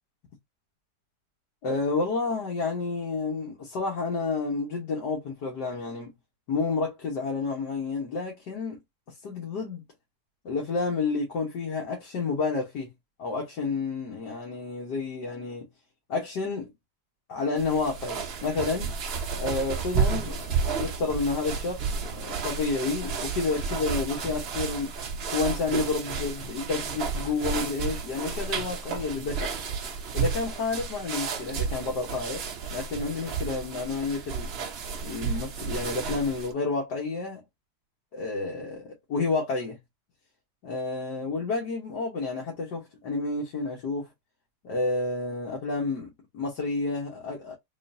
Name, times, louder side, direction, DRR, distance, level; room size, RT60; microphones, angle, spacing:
voice 1, 1.6-6.1 6.5-8.8 9.2-9.8 10.5-12.9 13.2-15.7 16.1-16.7 17.3-18.9 19.4-24.9 25.3-29.5 30.1-32.4 32.7-34.5 35.0-37.4 38.1-39.8 40.6-44.1 44.6-47.5, left 3 dB, 85° left, 1.8 m, -30 dB
sound 1, 17.6-36.5, right 5 dB, 55° right, 0.7 m, -32 dB
3.8 x 3.1 x 2.6 m
omnidirectional pair, 1.8 m